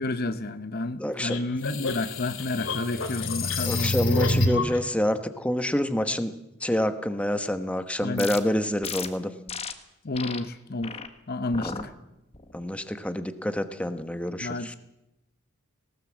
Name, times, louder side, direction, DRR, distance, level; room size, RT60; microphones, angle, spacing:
voice 1, 0.0-4.0 8.0-8.3 10.0-11.0 11.3-11.9 14.4-14.7, left 2 dB, 45° left, 0.8 m, -30 dB
voice 2, 1.0-1.4 3.6-6.3 6.6-9.3 11.6-11.8 12.5-14.8, left 1 dB, 5° left, 1.0 m, -27 dB
sound 1, 1.3-4.8, left 2 dB, 60° left, 2.5 m, -27 dB
sound 2, 8.2-8.4 8.8-9.1 9.5-9.7 10.1-10.4 10.8-11.1 11.5-11.8 12.3-12.7, left 6 dB, 25° left, 1.3 m, -35 dB
19.0 x 18.5 x 7.5 m
head